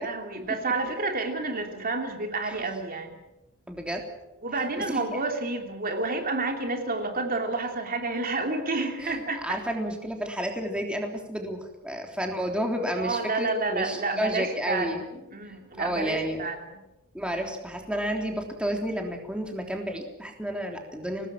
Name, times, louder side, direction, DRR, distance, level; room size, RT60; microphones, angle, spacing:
voice 1, 0.0-3.1 4.4-9.6 12.9-14.9 15.3-16.8, right 3 dB, 45° right, 3 dB, 3.0 m, -30 dB
voice 2, 3.7-4.0 4.9-5.2 9.0-15.0 15.5-16.4 17.1-21.3, equal, 5° right, 2 dB, 3.5 m, -31 dB
24.5 x 19.0 x 7.5 m, 0.96 s
head